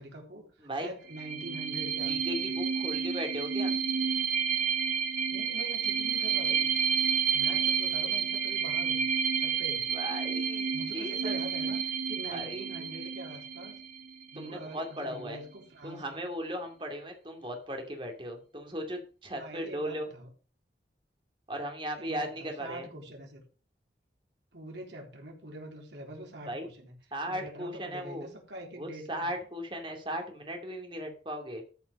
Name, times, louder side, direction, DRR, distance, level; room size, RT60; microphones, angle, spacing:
voice 1, 0.0-2.6 5.3-6.7 7.3-9.1 9.4-9.9 10.7-13.8 14.3-16.2 19.4-20.3 21.9-23.4 24.5-29.3, right 1 dB, 90° right, 1 dB, 3.6 m, -44 dB
voice 2, 0.6-0.9 2.0-3.7 9.9-11.4 12.3-12.7 14.3-15.4 15.8-20.1 21.5-22.9 26.5-26.7 27.1-28.3 28.8-31.6, equal, 30° right, 3 dB, 2.5 m, -37 dB
sound 1, 1.1-14.5, right 7 dB, 50° right, 2.2 m, -30 dB
13.5 x 5.7 x 5.3 m, 0.39 s
head